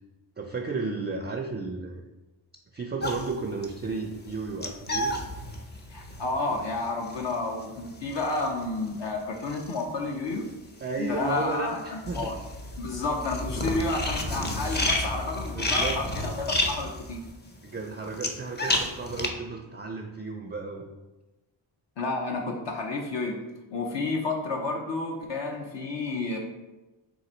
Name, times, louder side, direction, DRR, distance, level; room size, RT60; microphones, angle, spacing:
voice 1, 0.4-2.0 2.7-5.1 10.8-12.4 12.9-13.0 15.5-16.0 17.6-20.9, right 3 dB, 25° right, 3 dB, 0.4 m, -33 dB
sound 1, 3.0-10.5 10.8-19.3, left 1 dB, 20° left, 0.6 m, -31 dB
voice 2, 5.9-10.4 11.0-12.4 12.8-17.2 22.0-23.4 23.7-26.4, left 3 dB, 60° left, 0 dB, 0.7 m, -31 dB
3.9 x 2.6 x 4.3 m, 1.1 s
cardioid pair, 65°, 48 cm